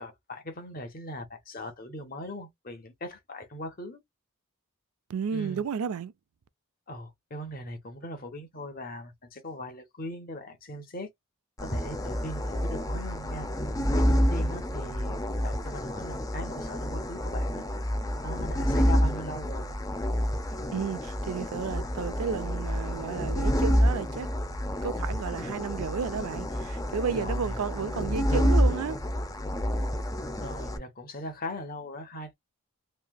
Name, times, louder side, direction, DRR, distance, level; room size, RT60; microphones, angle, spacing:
voice 1, 0.0-4.0 5.3-5.6 6.9-11.1 11.6-13.5 13.9-15.2 15.4-17.6 18.2-19.7 27.1-27.6 30.4-32.3, left 1 dB, 40° left, 1.0 m, -39 dB
voice 2, 5.1-6.1 20.7-24.3 24.8-29.0, right 6 dB, 85° right, 0.4 m, -32 dB
sound 1, 11.6-30.8, equal, 15° left, 0.5 m, -28 dB
3.2 x 2.8 x 2.2 m
head